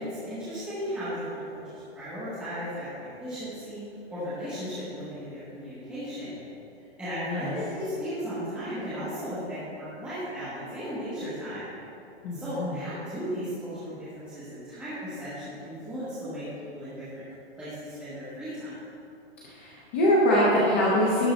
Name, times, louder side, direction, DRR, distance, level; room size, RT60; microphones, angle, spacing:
voice 1, 0.0-3.8 4.1-6.4 7.0-11.7 12.3-16.4 16.7-17.2 17.6-18.7, equal, 5° right, -14 dB, 1.2 m, -35 dB
voice 2, 12.2-12.8 19.5-21.3, equal, 15° left, -6 dB, 0.5 m, -23 dB
11.0 x 3.7 x 6.0 m, 2.8 s
hypercardioid pair, 175°, 32 cm